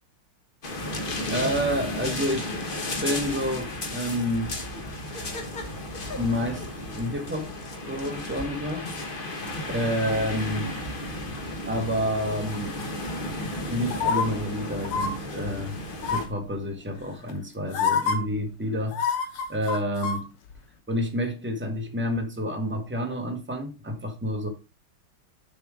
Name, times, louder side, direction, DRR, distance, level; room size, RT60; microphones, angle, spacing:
sound 1, 0.6-16.3, left 1 dB, 35° left, 1.0 m, -33 dB
voice 1, 1.3-2.5 3.0-4.6 6.2-7.5 7.9-8.9 9.7-10.7 11.7-12.8 13.7-15.8 16.1-19.2 19.5-20.3 20.9-24.5, equal, 10° right, 0.5 m, -29 dB
sound 2, 13.9-14.3 14.8-15.1 16.0-16.4 17.3-17.4 17.7-18.2 18.9-20.2 20.5-20.6, left 6 dB, 90° left, 1.9 m, -26 dB
7.0 x 4.3 x 4.9 m
omnidirectional pair, 2.3 m